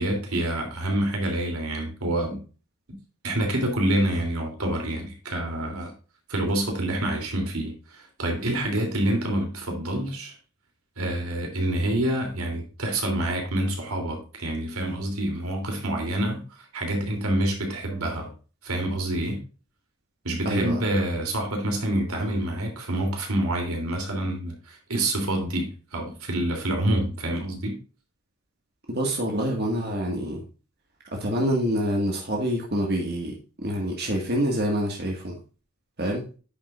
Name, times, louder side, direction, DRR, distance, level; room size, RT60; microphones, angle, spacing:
voice 1, 0.0-2.4 2.9-3.0 3.2-5.9 6.3-10.4 11.0-18.3 18.6-19.4 20.2-27.8, right 1 dB, 85° right, 3.1 m, -27 dB
voice 2, 20.5-20.8 28.9-30.4 31.1-35.4 36.0-36.3, equal, 45° right, 1.8 m, -26 dB
9.8 x 7.5 x 2.5 m
head